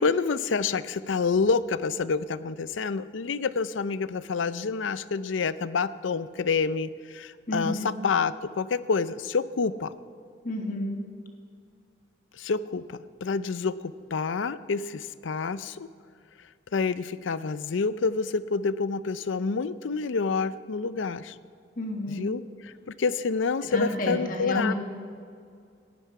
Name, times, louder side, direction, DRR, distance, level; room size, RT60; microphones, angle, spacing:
voice 1, 0.0-9.9 12.3-15.9 16.7-21.4 22.1-24.7, left 4 dB, 80° left, 15 dB, 0.5 m, -28 dB
voice 2, 7.5-7.9 10.4-11.0 21.8-22.3 23.7-24.7, left 1 dB, 45° left, 2 dB, 1.7 m, -30 dB
18.0 x 11.5 x 4.8 m, 2.3 s
head